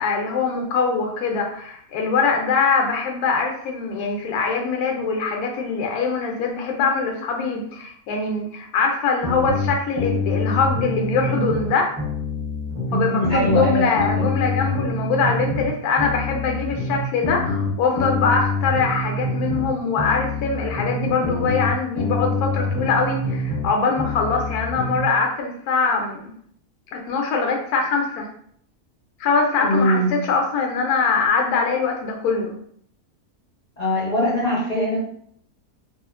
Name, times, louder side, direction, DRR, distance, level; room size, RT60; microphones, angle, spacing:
voice 1, 0.0-12.0 12.9-26.3 26.9-28.3 29.2-32.5, left 4 dB, 80° left, 2 dB, 1.1 m, -23 dB
sound 1, 9.2-11.7 12.0-15.7 16.0-19.7 20.0-23.7 24.0-25.0, left 2 dB, 35° right, 0.8 m, -26 dB
voice 2, 12.9-14.3 29.6-30.2 33.8-35.0, equal, 40° left, -6 dB, 0.6 m, -22 dB
2.7 x 2.4 x 2.4 m, 0.65 s
omnidirectional pair, 1.6 m